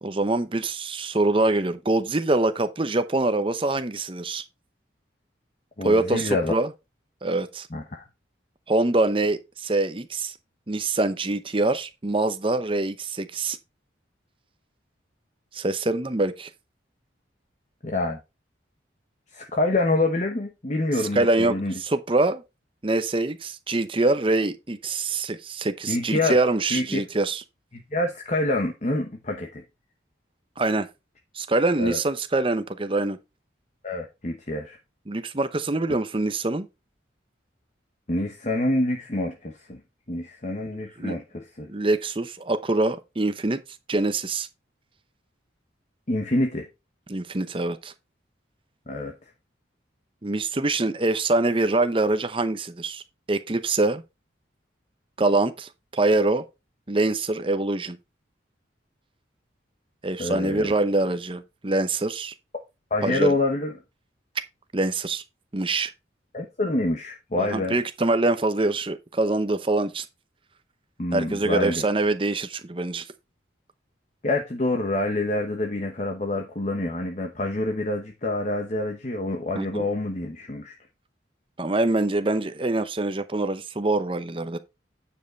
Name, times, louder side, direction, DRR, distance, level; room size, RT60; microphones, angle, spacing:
voice 1, 0.0-4.4 5.8-6.7 7.2-7.7 8.7-10.4 10.7-13.6 15.5-16.5 21.1-22.4 22.8-27.4 30.6-30.9 31.3-33.2 35.1-36.7 41.0-41.2 41.7-43.6 43.9-44.5 47.1-47.9 50.2-54.0 55.2-56.4 56.9-58.0 60.0-62.3 63.0-63.3 64.7-65.2 65.5-65.9 67.4-70.1 71.1-73.1 79.5-79.9 81.6-84.6, right 2 dB, 25° right, 0.7 m, -24 dB
voice 2, 5.8-6.5 7.7-8.0 17.8-18.2 19.3-21.8 25.9-26.4 26.7-27.0 27.7-29.6 31.8-32.0 33.8-34.8 38.1-39.8 40.1-41.7 46.1-46.7 48.9-49.1 60.2-60.7 62.9-63.7 66.3-67.8 71.0-71.8 74.2-80.7, left 2 dB, 35° left, 1.0 m, -26 dB
9.3 x 5.3 x 4.4 m
head